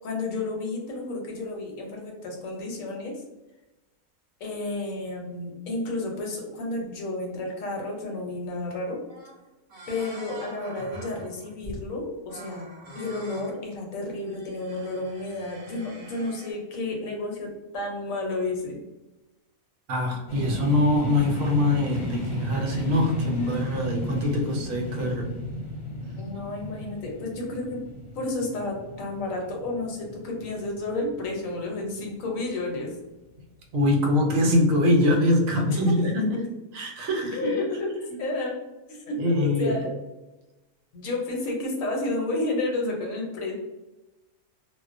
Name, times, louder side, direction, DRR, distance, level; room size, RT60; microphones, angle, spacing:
voice 1, 0.0-3.2 4.4-9.0 9.9-18.8 26.2-27.8 28.1-32.9 35.7-35.9 37.3-37.9 38.2-38.6 38.9-39.9 40.9-43.5, left 2 dB, 75° left, 0 dB, 1.0 m, -31 dB
sound 1, 9.1-9.4 9.7-11.9 12.3-13.6 14.1-16.5, right 1 dB, 55° right, 0.9 m, -44 dB
voice 2, 19.9-25.3 33.7-36.5 36.7-37.5 39.2-39.8, left 1 dB, 75° right, 1 dB, 1.0 m, -23 dB
sound 2, 20.3-32.1, left 1 dB, 55° left, 0.7 m, -35 dB
2.4 x 2.1 x 2.4 m, 1.0 s
omnidirectional pair, 1.5 m